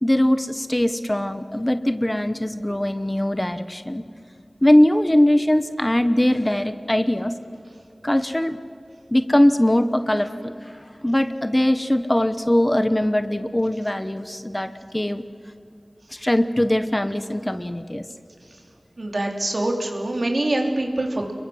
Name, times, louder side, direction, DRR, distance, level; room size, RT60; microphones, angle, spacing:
voice 1, 0.0-4.0 4.6-7.4 8.0-8.6 9.1-15.2 16.1-18.1, left 1 dB, 20° left, 10 dB, 1.0 m, -21 dB
voice 2, 19.0-21.3, right 1 dB, 60° right, 2 dB, 3.0 m, -24 dB
29.5 x 22.0 x 6.4 m, 2.5 s
wide cardioid pair, 65°, 0 cm